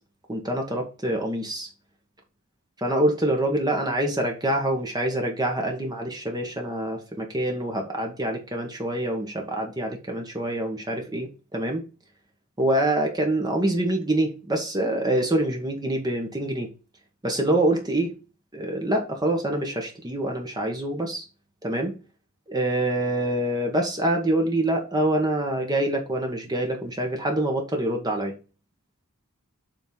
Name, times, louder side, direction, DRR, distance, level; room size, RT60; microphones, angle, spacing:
voice 1, 0.3-1.7 2.8-11.8 12.6-16.7 17.2-18.1 18.5-21.2 21.6-21.9 22.5-28.3, right 1 dB, 20° right, 1 dB, 1.3 m, -25 dB
7.1 x 3.7 x 5.4 m, 0.32 s
head